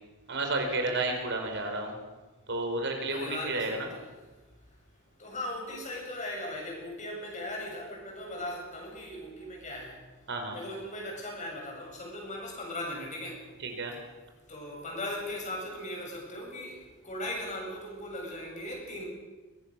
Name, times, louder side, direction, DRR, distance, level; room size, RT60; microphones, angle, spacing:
voice 1, 0.3-1.9 2.5-3.9 10.3-10.6 13.6-13.9, right 2 dB, 60° right, 3 dB, 4.5 m, -31 dB
voice 2, 3.1-4.0 5.2-9.9 10.5-13.4 14.5-16.8 17.0-19.1, left 1 dB, 35° left, 0 dB, 7.5 m, -38 dB
23.0 x 18.0 x 6.9 m, 1.2 s
head